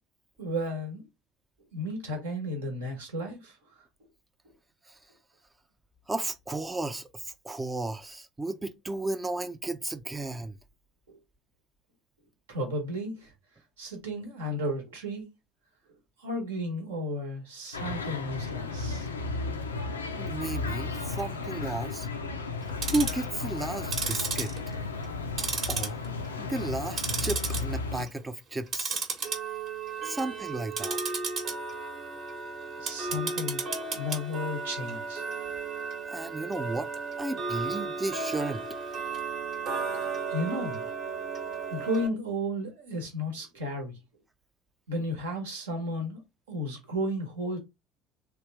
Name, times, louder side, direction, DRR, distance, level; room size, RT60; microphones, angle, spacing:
voice 1, 0.4-1.0 1.7-3.6 11.1-11.2 12.5-13.3 13.8-15.3 16.2-19.1 32.8-33.6 33.9-35.2 40.3-40.8 41.7-43.9 44.9-46.2 46.5-47.6, equal, 75° right, 1.1 m, -33 dB
voice 2, 6.1-10.6 20.2-22.1 22.9-24.5 25.7-26.0 26.4-29.1 30.0-31.0 36.1-36.9 37.2-38.6, right 2 dB, 15° right, 0.4 m, -33 dB
sound 1, 17.7-28.1, left 3 dB, 85° left, 0.4 m, -34 dB
Tick-tock, 22.6-23.3 23.8-25.1 25.4-26.3 26.6-27.6 28.0-28.2 28.7-42.1, right 4 dB, 45° right, 1.1 m, -34 dB
3.3 x 2.4 x 3.2 m
figure-of-eight pair, 65°, 0 cm